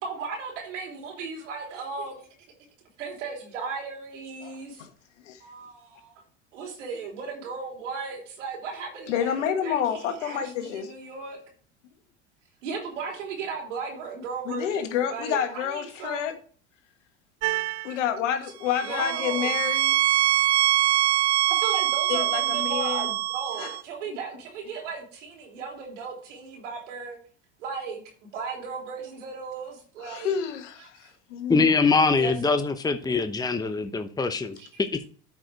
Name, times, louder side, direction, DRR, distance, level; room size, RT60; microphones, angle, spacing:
voice 1, 0.0-2.3 3.0-4.9 5.4-6.2 6.5-11.4 12.6-16.3 18.8-19.8 21.5-27.2 27.6-30.3 30.8-31.1 32.1-32.6 34.6-34.8, right 5 dB, 85° right, 3.1 m, -36 dB
voice 2, 9.1-10.9 14.4-16.3 17.8-20.0 22.1-23.1 23.6-23.7 30.0-31.8, left 9 dB, 80° left, 1.5 m, -29 dB
sound 1, 17.4-18.0 18.7-23.8, right 15 dB, 55° right, 0.6 m, -24 dB
voice 3, 31.5-35.1, left 4 dB, 10° left, 0.9 m, -23 dB
9.0 x 5.2 x 4.5 m
hypercardioid pair, 80°, 36 cm